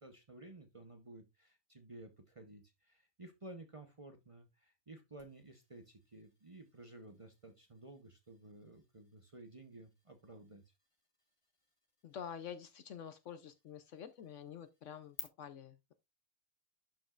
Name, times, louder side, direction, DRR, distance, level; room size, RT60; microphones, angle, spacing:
voice 1, 0.0-10.7, right 2 dB, 25° right, 0.8 m, -54 dB
sound 1, 5.2-15.2, left 3 dB, 25° left, 1.1 m, -58 dB
voice 2, 12.0-15.9, left 8 dB, 65° left, 0.9 m, -48 dB
11.5 x 5.2 x 2.4 m
omnidirectional pair, 1.5 m